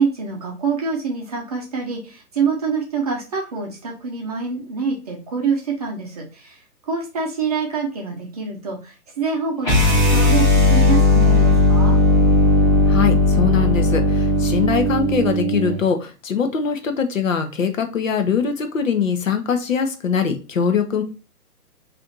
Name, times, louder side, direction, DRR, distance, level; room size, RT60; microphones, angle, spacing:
voice 1, 0.0-12.0, right 5 dB, 25° right, -1 dB, 0.6 m, -25 dB
sound 1, 9.6-15.8, left 2 dB, 5° left, 0.9 m, -16 dB
voice 2, 12.9-21.0, left 6 dB, 55° left, 6 dB, 0.8 m, -22 dB
3.3 x 2.6 x 4.0 m, 0.32 s
figure-of-eight pair, 135°, 47 cm